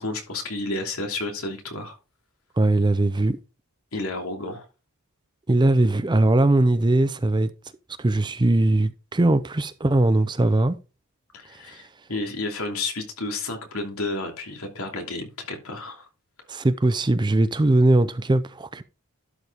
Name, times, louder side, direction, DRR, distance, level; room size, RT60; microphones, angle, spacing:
voice 1, 0.0-2.0 3.9-4.6 11.3-16.1, left 2 dB, 75° left, 2.8 m, -31 dB
voice 2, 2.6-3.4 5.5-7.5 8.0-10.8 16.5-18.8, right 2 dB, 20° right, 0.5 m, -20 dB
12.0 x 5.0 x 3.5 m
head